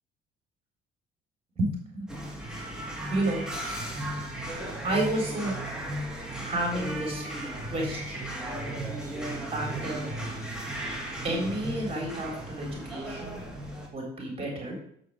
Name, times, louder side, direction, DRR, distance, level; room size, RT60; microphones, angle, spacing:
voice 1, 1.6-2.1 3.1-3.4 4.8-5.5 6.4-7.2 7.7-8.3 9.5-10.1 11.2-13.4 13.9-14.8, right 1 dB, 35° right, 0 dB, 3.7 m, -31 dB
sound 1, 2.1-13.9, right 1 dB, 5° right, 2.3 m, -35 dB
7.3 x 6.3 x 6.8 m, 0.67 s
cardioid pair, 110°, 17 cm